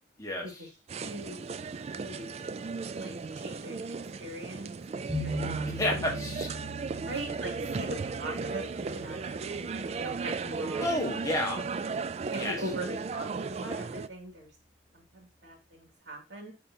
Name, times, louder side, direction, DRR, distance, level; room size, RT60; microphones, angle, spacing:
voice 1, 0.2-0.5 5.6-6.5 10.8-11.6 12.3-12.6, left 1 dB, 20° left, 0 dB, 1.5 m, -31 dB
sound 1, 0.9-14.1, right 4 dB, 35° right, 0.3 m, -36 dB
voice 2, 1.0-1.4 1.9-2.3 2.9-4.7 5.2-6.2 7.1-10.9 12.3-14.5 14.9-16.5, right 1 dB, 85° right, 1 dB, 2.4 m, -41 dB
sound 2, 5.1-10.8, right 1 dB, 15° right, 1.4 m, -39 dB
9.8 x 3.7 x 2.8 m, 0.28 s
head